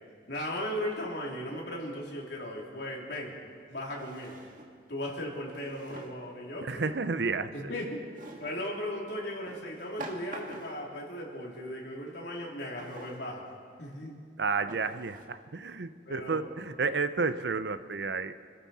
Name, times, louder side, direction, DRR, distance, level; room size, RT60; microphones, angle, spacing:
voice 1, 0.3-3.4 3.7-4.4 4.9-6.9 7.5-8.0 8.4-13.4 13.8-14.2 16.1-16.5, left 1 dB, 75° left, -2 dB, 3.0 m, -37 dB
Drawer open or close, 2.6-2.7 3.9-4.8 5.5-6.3 8.1-8.6 9.5-10.9 12.8-13.2 13.9-14.0 14.7-15.2, right 2 dB, 50° right, 1.7 m, -46 dB
voice 2, 6.6-7.5 14.4-18.3, right 4 dB, 75° right, 12 dB, 0.7 m, -31 dB
26.0 x 13.0 x 4.2 m, 2.1 s
head